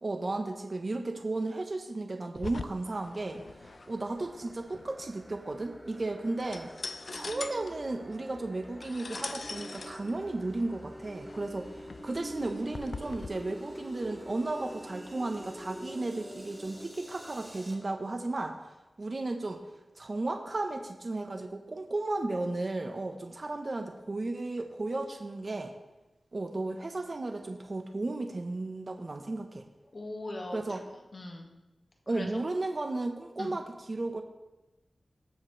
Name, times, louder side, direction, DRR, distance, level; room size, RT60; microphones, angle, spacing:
voice 1, 0.0-6.7 7.1-18.6 19.0-19.6 20.0-25.7 26.3-29.7 30.5-30.8 32.1-34.2, right 2 dB, 50° right, 5 dB, 1.1 m, -34 dB
sound 1, 2.3-13.3, left 3 dB, 70° left, 0.5 m, -43 dB
sound 2, 2.8-17.7, equal, 5° right, 2.5 m, -46 dB
voice 2, 29.9-30.8 31.1-31.5 32.1-32.4 33.4-33.5, left 2 dB, 50° left, 1 dB, 2.0 m, -40 dB
20.0 x 7.4 x 3.3 m, 1.0 s
wide cardioid pair, 60°, 0 cm